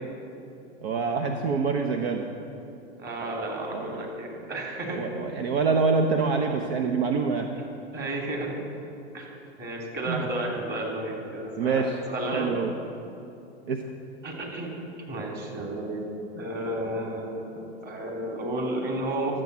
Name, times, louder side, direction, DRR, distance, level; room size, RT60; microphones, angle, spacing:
voice 1, 0.8-2.3 3.7-4.0 4.9-7.5 10.1-10.3 11.6-12.0 12.3-12.7 13.7-13.8, right 4 dB, 65° right, 4 dB, 1.1 m, -26 dB
voice 2, 3.0-5.0 7.9-8.6 9.1-9.3 9.6-12.5 14.2-14.7 15.1-16.1 16.3-19.4, right 1 dB, 30° right, 0 dB, 3.0 m, -32 dB
12.5 x 7.7 x 8.0 m, 2.7 s
hypercardioid pair, 120°, 33 cm